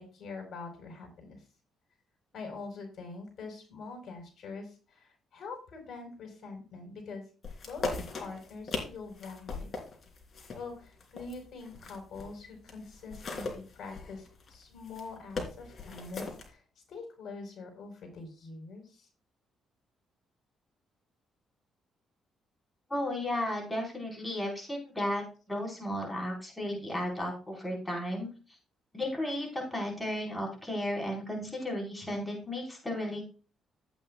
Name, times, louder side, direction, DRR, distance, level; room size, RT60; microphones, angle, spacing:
voice 1, 0.0-1.4 2.3-7.2 7.6-7.8 8.2-9.7 10.5-16.6 16.9-19.1, left 4 dB, 60° left, 3 dB, 4.6 m, -44 dB
sound 1, 7.4-12.4 12.7-16.5, left 3 dB, 45° left, 3.4 m, -39 dB
voice 2, 22.9-28.3 28.9-33.2, left 1 dB, 10° left, -1 dB, 4.6 m, -34 dB
14.0 x 9.0 x 2.4 m, 0.35 s
cardioid pair, 90°, 0 cm